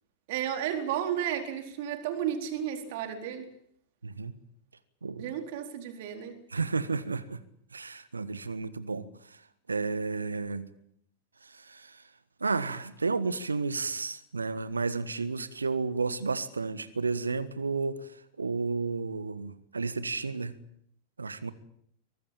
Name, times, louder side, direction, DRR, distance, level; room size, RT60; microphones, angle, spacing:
voice 1, 0.3-3.5 5.2-6.4, right 10 dB, 50° right, 4.1 m, -33 dB
voice 2, 4.0-4.3 5.0-5.3 6.5-7.4 7.7-9.1 9.7-10.6 11.4-12.0 12.4-18.0 18.4-20.5 21.2-21.5, right 4 dB, 75° right, 1.4 m, -32 dB
23.5 x 19.5 x 8.8 m
figure-of-eight pair, 90°, 0 cm